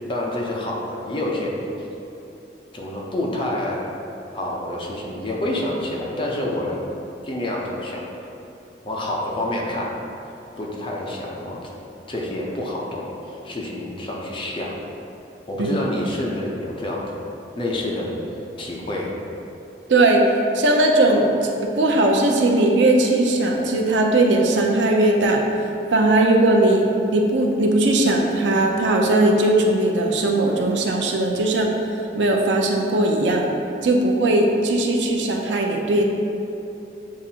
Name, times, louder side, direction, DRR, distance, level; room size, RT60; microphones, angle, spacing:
voice 1, 0.1-1.5 2.7-3.8 4.3-6.8 7.2-8.0 8.8-10.0 10.5-11.6 12.1-14.7 15.5-17.2 17.6-19.1, left 1 dB, 30° left, -3 dB, 0.6 m, -28 dB
voice 2, 19.9-20.2 20.5-25.4 25.9-26.9 27.1-31.7 32.1-33.5 33.8-36.1, right 2 dB, 85° right, 1 dB, 0.5 m, -18 dB
7.2 x 2.5 x 2.8 m, 3.0 s
head